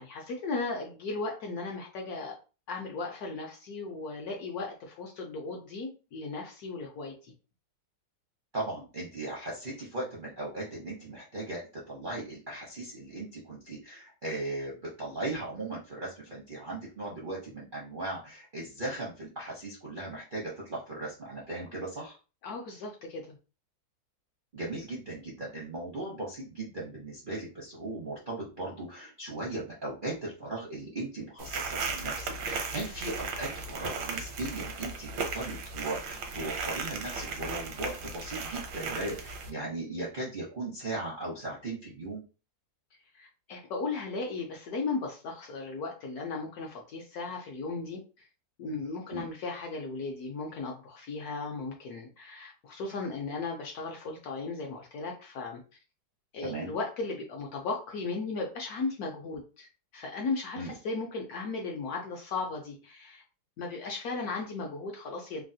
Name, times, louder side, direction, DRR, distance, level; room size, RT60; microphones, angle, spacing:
voice 1, 0.0-2.4 2.7-7.3 22.4-23.4 43.1-48.3 48.6-55.6 56.3-59.7 59.9-63.2 63.6-65.4, left 3 dB, 70° left, 1 dB, 0.9 m, -36 dB
voice 2, 8.5-22.2 24.5-42.2 49.1-49.3 56.4-56.7 60.5-60.7, right 2 dB, 55° right, -5 dB, 0.5 m, -38 dB
sound 1, 31.4-39.5, right 4 dB, 85° right, 1.3 m, -36 dB
3.2 x 2.3 x 2.6 m, 0.33 s
omnidirectional pair, 2.0 m